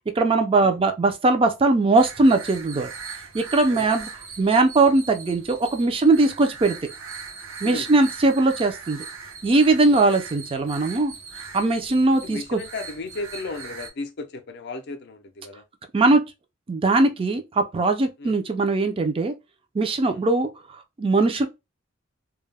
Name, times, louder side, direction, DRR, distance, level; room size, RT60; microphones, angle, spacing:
voice 1, 0.2-2.9 3.3-4.1 4.4-6.8 7.6-9.0 9.4-11.1 11.5-12.6 15.9-16.2 16.7-19.3 19.7-20.5 21.0-21.5, right 3 dB, 25° right, 0.4 m, -20 dB
sound 1, 2.0-13.9, right 5 dB, 80° right, 0.7 m, -40 dB
voice 2, 12.1-15.6 18.2-18.4 20.0-20.3, left 3 dB, 55° left, 0.5 m, -35 dB
2.3 x 2.0 x 3.2 m
head